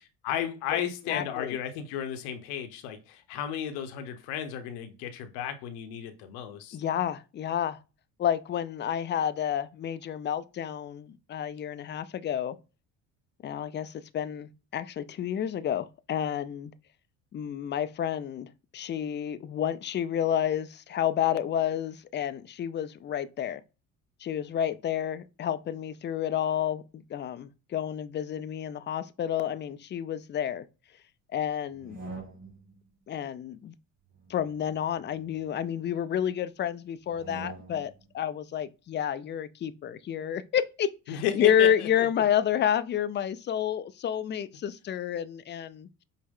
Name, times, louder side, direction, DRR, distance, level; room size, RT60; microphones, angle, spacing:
voice 1, 0.0-6.8 41.1-42.1, left 9 dB, 75° left, 0.8 m, -34 dB
voice 2, 1.1-1.6 6.7-7.8 8.2-12.6 13.4-16.7 17.3-18.5 18.7-23.6 24.2-30.6 31.3-32.0 33.1-33.7 34.3-45.9, left 9 dB, 30° left, 0.4 m, -30 dB
sound 1, 31.7-32.8 34.1-35.7 37.0-38.0, right 3 dB, 20° right, 2.4 m, -45 dB
5.3 x 2.1 x 3.6 m
hypercardioid pair, 65°, 42 cm